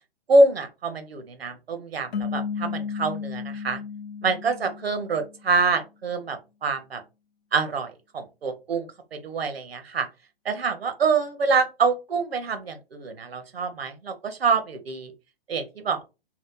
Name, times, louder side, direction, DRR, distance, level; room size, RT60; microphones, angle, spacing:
voice 1, 0.3-3.8 4.2-7.0 7.5-10.1 10.4-15.1 15.5-16.1, right 3 dB, 70° right, 8 dB, 0.8 m, -25 dB
sound 1, 2.1-5.5, left 6 dB, 80° left, 0.5 m, -33 dB
2.8 x 2.1 x 3.6 m, 0.27 s
figure-of-eight pair, 120°, 31 cm